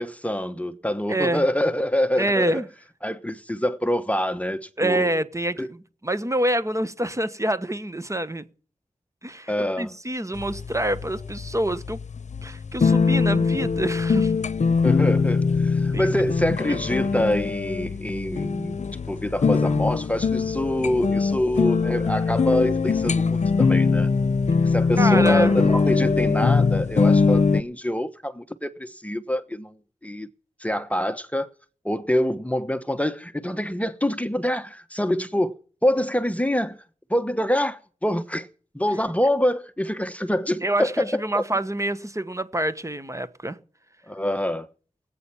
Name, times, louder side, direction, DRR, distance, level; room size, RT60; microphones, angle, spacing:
voice 1, 0.0-2.6 3.0-5.1 5.6-5.7 9.5-9.9 14.8-24.1 24.7-29.8 30.0-30.3 30.6-31.5 31.8-36.8 37.1-38.5 38.7-41.4 44.1-44.7, left 1 dB, 10° left, 1.1 m, -25 dB
voice 2, 1.1-1.5 2.2-2.7 4.8-5.6 6.0-8.4 9.2-12.0 12.4-14.3 15.9-16.1 16.7-16.8 25.0-25.6 40.6-43.6, right 1 dB, 25° right, 1.2 m, -26 dB
sound 1, 10.4-27.6, left 4 dB, 65° left, 0.8 m, -22 dB
18.0 x 8.8 x 7.1 m
cardioid pair, 45°, 13 cm